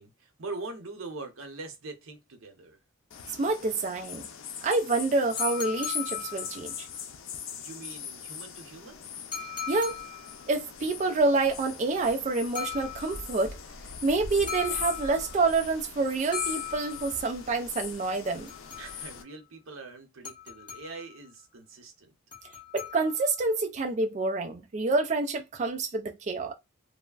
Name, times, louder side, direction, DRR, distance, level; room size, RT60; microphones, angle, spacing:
voice 1, 0.0-2.8 7.6-9.0 18.8-22.1, right 3 dB, 90° right, 0.8 m, -43 dB
sound 1, 3.1-19.2, left 7 dB, 75° left, 0.5 m, -40 dB
voice 2, 3.3-4.2 4.6-6.9 9.7-10.0 10.5-13.6 14.0-18.5 22.7-26.5, right 3 dB, 35° right, 0.3 m, -27 dB
sound 2, 5.4-6.9 9.3-10.5 12.5-13.4 14.5-15.5 16.3-17.3 18.2-19.2 20.2-21.2 22.3-23.4, left 7 dB, 25° left, 1.2 m, -39 dB
3.2 x 2.1 x 2.3 m
head